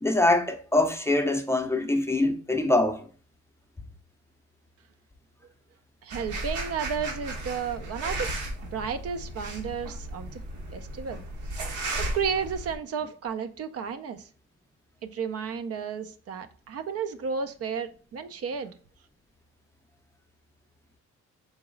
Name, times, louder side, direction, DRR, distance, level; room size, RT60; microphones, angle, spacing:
voice 1, 0.0-3.1, left 2 dB, 10° left, 0.5 m, -24 dB
voice 2, 6.0-8.3 8.7-10.4 10.7-11.2 12.0-14.3 15.0-18.7, right 6 dB, 55° right, 0.5 m, -32 dB
sound 1, 6.1-12.7, right 1 dB, 75° right, 1.1 m, -35 dB
3.9 x 2.9 x 3.8 m
cardioid pair, 90°, 30 cm